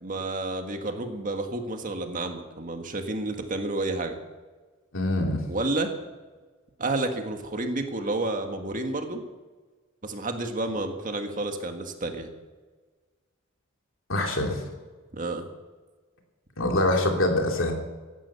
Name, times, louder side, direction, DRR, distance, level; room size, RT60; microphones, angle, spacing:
voice 1, 0.0-4.2 5.5-5.9 6.8-9.2 10.0-12.3 15.1-15.4, right 2 dB, 40° right, 5 dB, 1.8 m, -30 dB
voice 2, 4.9-5.4 14.1-14.6 16.6-17.7, left 1 dB, 70° left, 2 dB, 2.9 m, -24 dB
17.0 x 11.5 x 6.9 m, 1.3 s
head